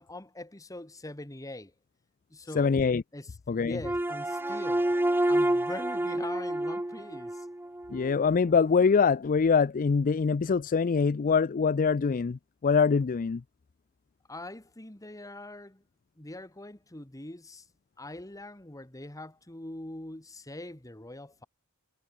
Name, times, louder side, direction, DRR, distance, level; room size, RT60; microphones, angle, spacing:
voice 1, 0.0-1.7 2.3-2.8 3.1-3.3 3.6-4.8 5.3-7.5 14.3-15.8 16.2-17.6 18.0-21.5, left 1 dB, 15° left, 1.5 m, -42 dB
voice 2, 2.5-3.0 3.5-3.8 7.9-13.4, left 5 dB, 35° left, 0.4 m, -24 dB
sound 1, 3.8-8.1, right 1 dB, 10° right, 0.6 m, -28 dB
head